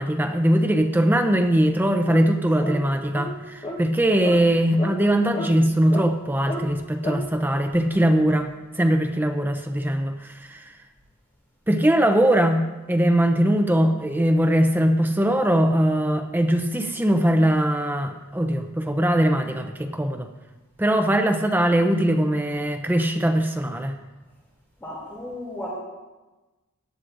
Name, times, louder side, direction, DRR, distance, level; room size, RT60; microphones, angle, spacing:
voice 1, 0.0-8.5 8.7-10.7 11.7-12.6 12.9-20.3 20.8-24.0, right 1 dB, 10° right, 5 dB, 0.6 m, -21 dB
sound 1, 2.1-2.3 2.6-2.8 3.1-3.3 3.6-3.8 4.2-4.4 4.8-4.9 5.3-5.5 5.9-6.1 6.5-6.6 7.0-7.2, equal, 30° left, 1.2 m, -31 dB
voice 2, 24.8-25.7, left 1 dB, 10° left, -8 dB, 2.7 m, -34 dB
17.5 x 11.5 x 2.6 m, 1.2 s
head